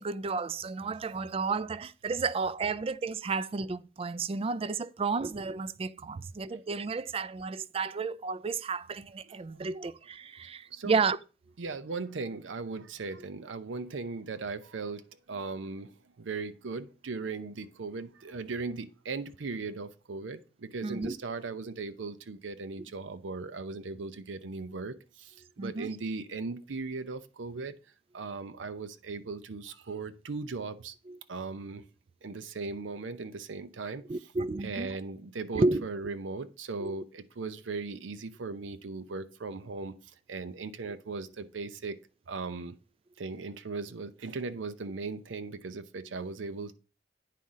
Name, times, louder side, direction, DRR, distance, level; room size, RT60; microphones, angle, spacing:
voice 1, 0.0-11.2 20.8-21.1 25.6-25.9 31.1-31.2 34.1-35.0 35.5-35.9 36.8-37.0, right 4 dB, 30° right, 0.4 m, -32 dB
voice 2, 9.3-9.6 10.7-11.0 11.6-27.7 28.1-30.9 31.3-31.8 32.2-34.0 34.6-39.9 40.3-42.0 42.3-42.8 43.2-46.7, right 4 dB, 85° right, 0.6 m, -38 dB
9.2 x 3.7 x 5.6 m
head